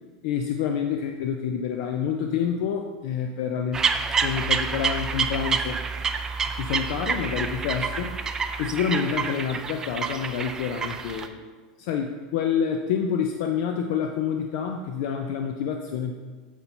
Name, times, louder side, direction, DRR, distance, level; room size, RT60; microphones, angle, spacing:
voice 1, 0.2-3.8 4.2-5.8 6.5-8.1 8.6-11.4 11.8-16.1, left 7 dB, 60° left, 5 dB, 0.5 m, -28 dB
sound 1, 3.7-11.3, right 5 dB, 15° right, 0.3 m, -28 dB
8.0 x 4.3 x 4.3 m, 1.4 s
supercardioid pair, 150°, 4 cm